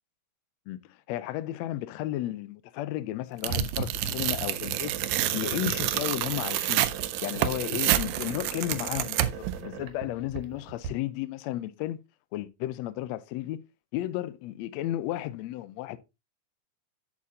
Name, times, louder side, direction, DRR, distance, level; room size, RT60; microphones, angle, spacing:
voice 1, 0.7-6.9 7.2-9.3 9.6-12.0 12.3-13.6 13.9-16.0, left 14 dB, 80° left, 1.6 m, -33 dB
sound 1, 3.4-10.9, right 5 dB, 70° right, 2.4 m, -37 dB
Tearing, 3.4-9.6, right 14 dB, 90° right, 2.3 m, -29 dB
8.1 x 7.5 x 2.8 m
omnidirectional pair, 3.8 m